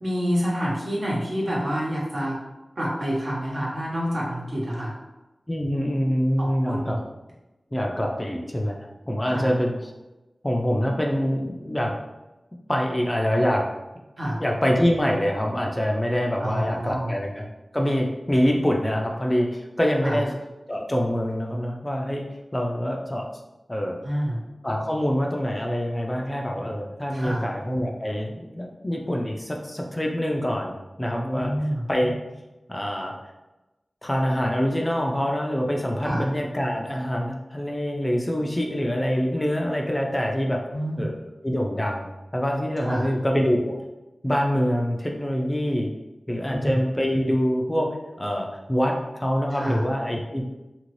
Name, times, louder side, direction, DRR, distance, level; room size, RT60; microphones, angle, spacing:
voice 1, 0.0-2.4 2.8-4.9 6.4-7.0 9.3-9.5 14.2-14.4 16.4-17.1 20.0-20.2 24.0-24.4 27.1-27.5 31.3-31.8 36.0-36.2 40.7-41.1 42.8-43.1 46.5-46.8 49.5-49.8, equal, 60° right, -5 dB, 1.1 m, -27 dB
voice 2, 5.5-7.0 7.7-8.8 9.1-9.9 10.4-11.9 12.7-13.6 14.4-17.4 17.7-20.3 20.7-22.3 22.5-23.3 23.7-24.0 24.6-31.5 31.9-32.1 32.7-33.2 34.0-40.6 41.0-41.1 41.4-43.8 44.2-45.9 46.3-47.9 48.2-50.4, equal, 20° left, 1 dB, 0.4 m, -25 dB
2.9 x 2.6 x 3.1 m, 1.0 s
wide cardioid pair, 55°, 0 cm